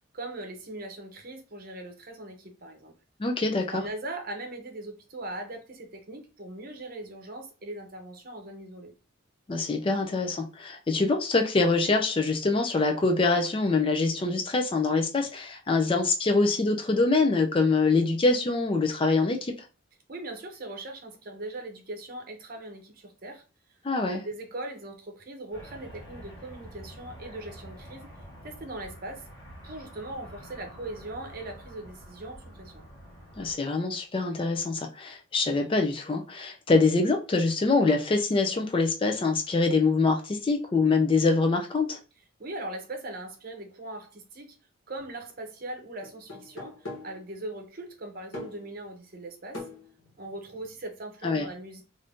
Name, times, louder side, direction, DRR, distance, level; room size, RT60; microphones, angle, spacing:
voice 1, 0.1-2.9 3.7-8.9 20.1-23.4 23.7-28.1 28.4-29.3 29.6-32.8 42.4-44.5 44.9-49.7 50.2-51.8, right 2 dB, 45° right, 0.7 m, -40 dB
voice 2, 3.2-3.8 9.5-19.5 23.8-24.2 33.4-42.0 51.2-51.5, left 3 dB, 25° left, 0.4 m, -24 dB
sound 1, 25.5-33.6, equal, 55° left, 1.1 m, -47 dB
sound 2, 45.0-45.1 46.0-47.3 48.3-48.7 49.5-50.8, left 2 dB, 75° left, 1.2 m, -42 dB
2.6 x 2.5 x 3.4 m
head